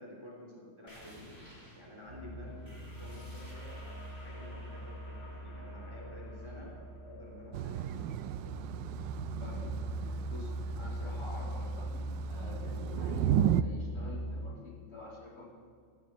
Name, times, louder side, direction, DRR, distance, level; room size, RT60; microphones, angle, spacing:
voice 1, 0.0-1.4 1.7-8.6, left 1 dB, 10° right, -2 dB, 3.3 m, -51 dB
sound 1, 0.9-10.1, equal, 10° left, 4.8 m, -53 dB
sound 2, 2.1-14.4, equal, 30° right, 4.8 m, -41 dB
Thunder / Rain, 7.5-13.6, right 11 dB, 75° right, 1.1 m, -34 dB
voice 2, 10.0-15.5, left 1 dB, 40° left, -6 dB, 4.9 m, -48 dB
15.5 x 15.0 x 4.4 m, 2.2 s
omnidirectional pair, 2.4 m